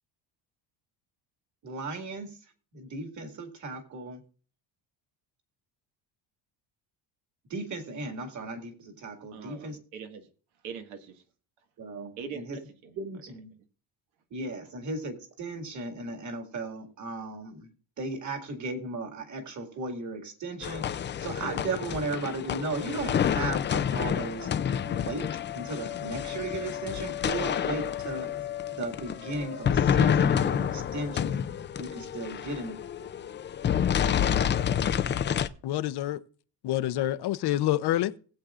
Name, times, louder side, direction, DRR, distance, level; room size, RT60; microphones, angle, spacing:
voice 1, 1.6-2.3 2.7-4.2 7.5-9.8 11.8-12.6 13.0-13.5 14.3-17.7 18.0-24.5 24.8-25.3 25.6-28.3 28.7-31.4 31.8-32.8, right 2 dB, 35° right, 2.1 m, -36 dB
voice 2, 9.3-10.3 10.6-11.2 12.2-13.0 13.3-13.4, right 6 dB, 80° right, 1.9 m, -42 dB
sound 1, 20.6-35.5, left 8 dB, 25° left, 0.4 m, -28 dB
voice 3, 35.6-36.2 36.6-38.1, left 13 dB, 55° left, 0.7 m, -27 dB
19.5 x 8.0 x 2.5 m
cardioid pair, 145°, 47 cm